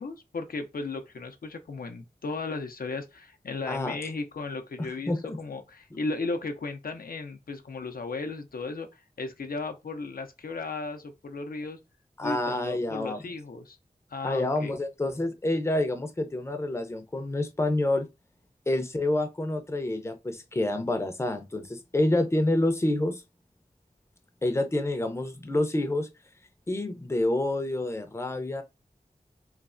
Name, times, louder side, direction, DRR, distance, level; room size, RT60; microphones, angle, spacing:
voice 1, 0.0-11.8 12.2-13.8 14.1-14.7, left 3 dB, 75° left, 0.4 m, -35 dB
voice 2, 3.7-4.0 4.8-5.4 12.2-13.2 14.2-18.1 18.7-23.2 24.4-26.1 26.7-28.6, left 1 dB, 20° left, 0.5 m, -28 dB
3.1 x 2.0 x 2.4 m
wide cardioid pair, 40°, 15 cm